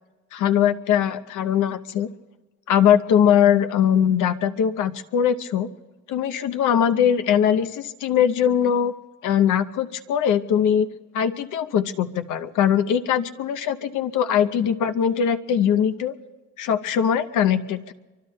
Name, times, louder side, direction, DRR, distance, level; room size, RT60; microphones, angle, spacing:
voice 1, 0.3-2.1 2.7-5.7 6.1-8.9 9.2-10.9 11.1-16.1 16.6-17.9, left 9 dB, 85° left, 7 dB, 0.8 m, -21 dB
26.5 x 24.0 x 2.2 m, 1.2 s
cardioid pair, 90°, 30 cm